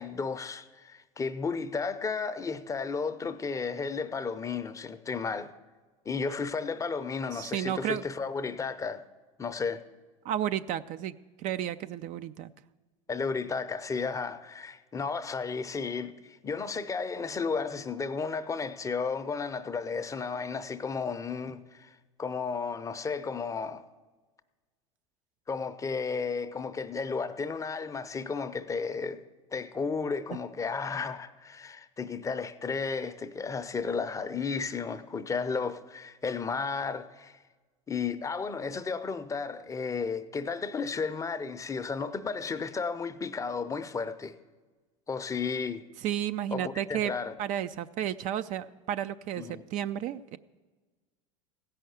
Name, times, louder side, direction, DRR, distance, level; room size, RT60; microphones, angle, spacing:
voice 1, 0.0-5.5 6.1-9.0 9.4-9.8 13.1-21.9 22.2-23.8 25.5-29.2 29.5-37.4 37.9-44.3 45.1-45.8 46.5-47.3 49.4-49.7, left 5 dB, 20° left, 0.6 m, -33 dB
voice 2, 7.3-8.0 10.2-12.5 46.0-47.1 47.4-50.4, right 11 dB, 45° right, 0.4 m, -32 dB
15.5 x 5.7 x 7.9 m
hypercardioid pair, 100°, 18 cm